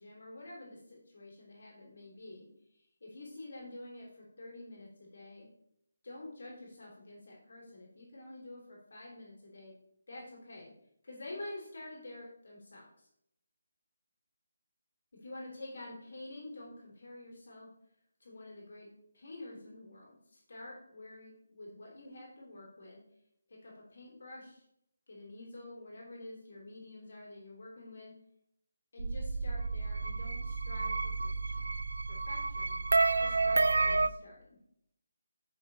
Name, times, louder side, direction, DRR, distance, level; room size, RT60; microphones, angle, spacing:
voice 1, 0.0-5.5 6.0-9.7 10.1-10.7 11.0-13.1 15.2-17.7 18.2-18.9 19.1-23.0 23.5-24.6 25.1-28.1 28.9-31.6 32.1-32.8 33.2-34.6, left 2 dB, 50° left, -3 dB, 3.0 m, -48 dB
sound 1, 29.0-34.1, right 3 dB, 75° right, 0.5 m, -30 dB
9.6 x 6.0 x 3.3 m, 0.75 s
hypercardioid pair, 180°, 0 cm